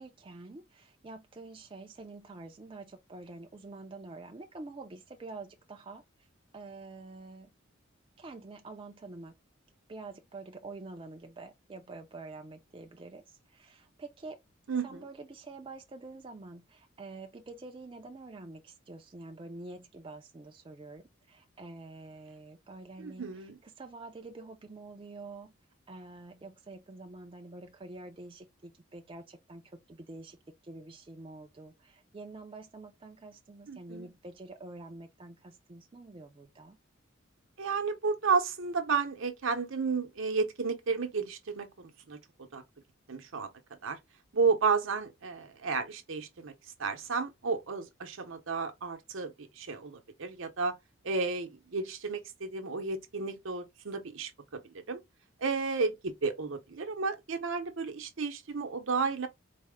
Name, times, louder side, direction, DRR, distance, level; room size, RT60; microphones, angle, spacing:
voice 1, 0.0-6.0 6.5-7.5 8.2-9.4 9.9-14.4 14.8-25.5 25.9-30.4 30.6-36.8, right 3 dB, 25° right, 0.4 m, -47 dB
voice 2, 14.7-15.0 23.0-23.6 33.7-34.1 37.6-42.6 43.1-43.5 43.8-44.0 44.3-46.5 46.8-50.7 51.0-54.6 54.9-55.0 55.4-59.3, right 4 dB, 70° right, 0.7 m, -32 dB
4.1 x 2.0 x 3.5 m
head